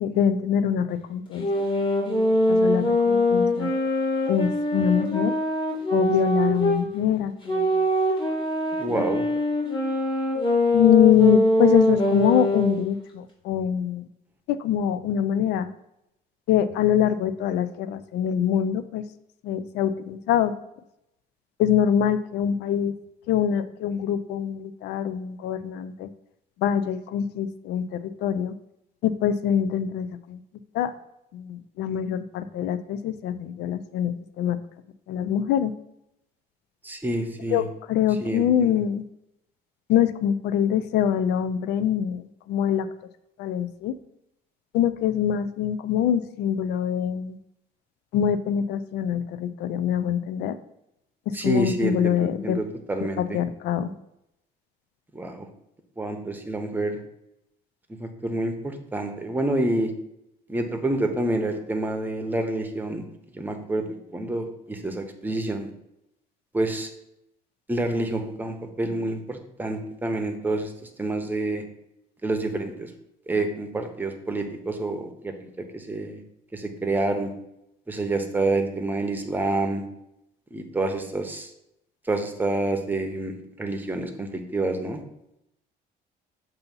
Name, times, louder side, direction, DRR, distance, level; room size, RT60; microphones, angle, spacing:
voice 1, 0.0-1.6 2.1-2.2 2.5-3.7 4.3-5.3 5.9-7.7 8.9-9.0 10.7-14.1 14.5-15.7 16.5-19.0 19.4-20.5 21.6-22.9 23.3-26.1 26.6-28.5 29.0-30.4 30.7-30.9 31.3-34.6 35.1-35.7 37.5-39.0 39.9-42.2 42.5-42.9 43.4-43.9 44.7-47.4 48.1-50.5 51.4-52.6 53.0-53.1 53.3-53.9, left 9 dB, 80° left, 13 dB, 0.5 m, -24 dB
sound 1, 1.4-6.8 7.5-12.8, left 1 dB, 30° left, 2.5 m, -23 dB
voice 2, 8.8-9.3 36.8-37.6 38.2-38.8 51.3-53.4 55.1-55.5 56.0-56.9 58.0-59.9 60.5-63.0 63.3-63.8 64.1-65.7 66.5-66.9 67.7-70.7 71.0-71.6 72.2-72.9 73.3-76.2 76.5-77.3 77.9-79.8 80.5-81.5 82.1-85.0, right 2 dB, 10° right, 4 dB, 0.9 m, -28 dB
6.9 x 2.7 x 5.3 m, 0.82 s
cardioid pair, 110°, 17 cm